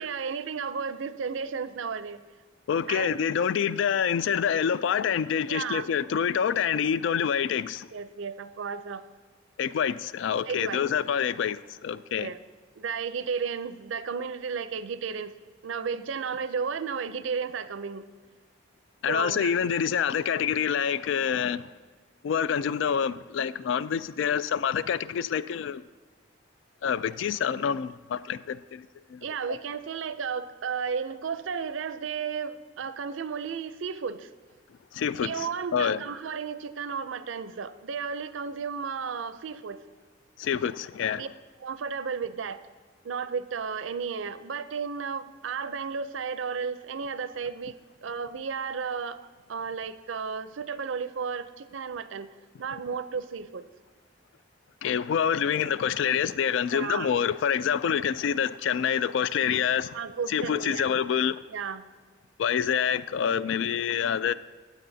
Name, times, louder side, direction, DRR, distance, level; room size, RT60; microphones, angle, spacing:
voice 1, 0.0-2.2 2.9-3.2 5.5-5.9 7.9-9.0 10.5-10.8 12.2-12.4 12.8-15.3 15.6-18.1 19.1-19.8 29.2-34.3 35.2-39.8 41.2-41.3 41.6-42.6 43.0-49.2 49.5-52.3 52.6-53.7 56.7-57.1 59.9-60.9 61.5-61.8, right 6 dB, 80° right, 0.5 m, -33 dB
voice 2, 2.7-7.9 9.6-12.3 19.0-21.7 22.2-25.8 26.8-29.6 34.9-35.5 35.7-36.0 40.4-41.3 54.8-60.0 60.3-61.4 62.4-64.3, left 8 dB, 75° left, 0.3 m, -27 dB
14.5 x 8.3 x 2.7 m
head